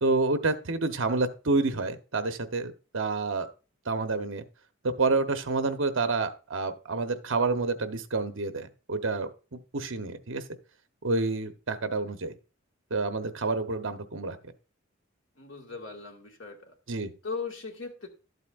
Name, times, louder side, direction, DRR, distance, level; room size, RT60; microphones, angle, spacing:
voice 1, 0.0-3.5 3.9-4.4 4.8-10.4 11.0-12.3 12.9-14.4 16.9-17.1, right 3 dB, 65° right, 9 dB, 0.9 m, -28 dB
voice 2, 15.4-16.7 17.2-18.1, left 4 dB, 65° left, 2 dB, 1.9 m, -38 dB
12.0 x 8.1 x 2.5 m, 0.33 s
head